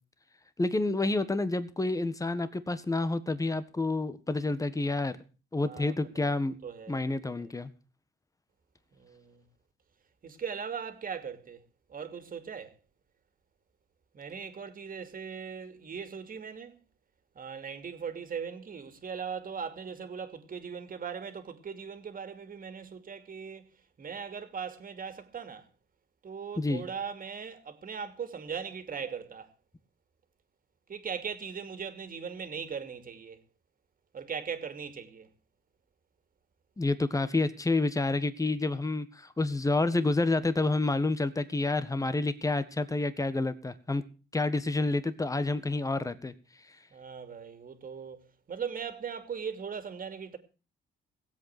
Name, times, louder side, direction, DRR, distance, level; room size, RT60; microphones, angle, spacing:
voice 1, 0.6-5.2 5.5-6.5 6.9-7.7 26.6-26.9 36.8-44.0 44.3-46.3, left 2 dB, 15° left, 1.6 m, -29 dB
voice 2, 5.6-7.5 9.0-9.4 10.2-11.6 11.9-12.7 14.1-16.8 17.3-23.7 24.0-25.7 26.2-29.5 30.9-33.4 34.1-35.3 46.9-50.4, right 6 dB, 45° right, 2.6 m, -39 dB
18.0 x 8.3 x 5.9 m
cardioid pair, 90°, 20 cm